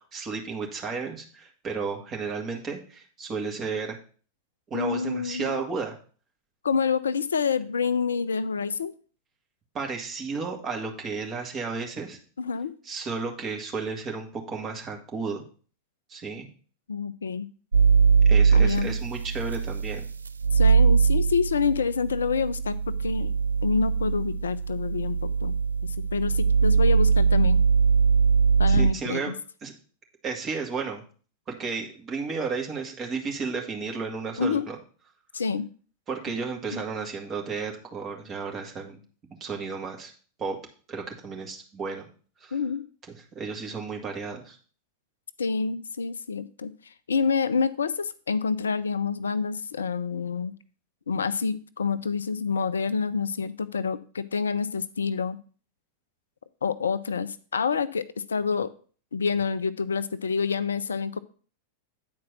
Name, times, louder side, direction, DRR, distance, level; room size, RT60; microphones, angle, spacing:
voice 1, 0.0-4.0 4.7-6.0 9.7-12.2 12.9-15.4 16.1-16.5 18.3-20.1 28.7-29.3 29.6-29.7 30.2-31.0 31.5-34.8 36.1-39.0 39.4-40.1 40.4-40.6 40.9-42.1 42.4-42.5 43.3-44.6, right 4 dB, 25° right, 1 dB, 2.1 m, -33 dB
voice 2, 4.7-5.6 6.6-8.9 12.4-12.7 16.9-17.5 18.5-18.9 20.5-23.3 23.6-25.6 25.8-27.6 28.6-29.3 34.4-34.7 35.3-35.7 36.7-36.8 42.5-42.9 45.4-50.5 51.1-55.4 56.6-58.7 59.1-61.2, left 5 dB, 70° left, 15 dB, 0.4 m, -27 dB
sound 1, 17.7-28.9, right 5 dB, 75° right, 0.3 m, -22 dB
9.4 x 4.5 x 6.0 m, 0.41 s
figure-of-eight pair, 90°, 0 cm